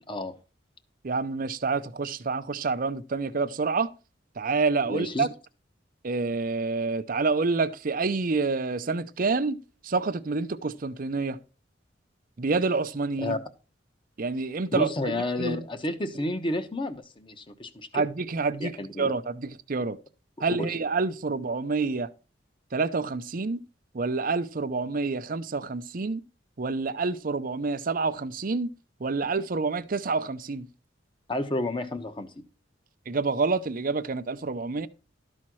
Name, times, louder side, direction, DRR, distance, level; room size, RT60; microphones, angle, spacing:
voice 1, 1.0-3.9 4.4-5.3 6.0-11.4 12.4-13.3 14.2-15.6 17.9-20.0 20.4-22.1 22.7-23.6 23.9-26.2 26.6-28.7 29.0-30.7 33.1-34.9, right 4 dB, 50° right, 0.6 m, -28 dB
voice 2, 4.9-5.3 13.2-13.4 14.7-18.0 18.6-19.1 20.6-20.8 31.3-32.3, left 1 dB, 25° left, 1.1 m, -31 dB
12.5 x 4.3 x 6.2 m
head